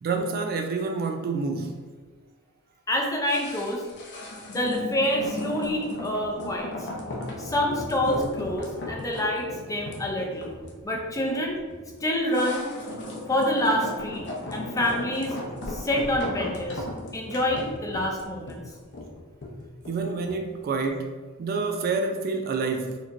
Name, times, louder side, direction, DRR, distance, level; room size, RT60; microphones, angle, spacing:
voice 1, 0.0-1.9 19.9-23.0, right 4 dB, 45° right, 0.3 m, -28 dB
voice 2, 2.9-3.8 4.5-6.9 7.4-10.5 10.8-11.6 12.0-12.6 13.3-14.2 14.5-15.4 15.7-16.8 17.1-18.6, left 1 dB, 15° left, 0.5 m, -27 dB
sound 1, 3.3-20.5 20.8-20.9, left 1 dB, 50° left, 0.7 m, -36 dB
4.4 x 2.9 x 2.5 m
head